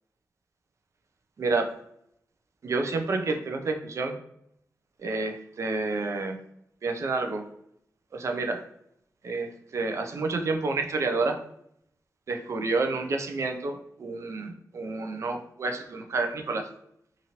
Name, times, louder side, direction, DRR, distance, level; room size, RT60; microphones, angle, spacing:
voice 1, 1.4-1.7 2.6-4.2 5.0-6.4 6.8-7.4 8.1-8.6 9.2-11.4 12.3-16.7, right 3 dB, 55° right, 4 dB, 0.4 m, -29 dB
2.8 x 2.5 x 2.9 m, 0.74 s
wide cardioid pair, 100°, 6 cm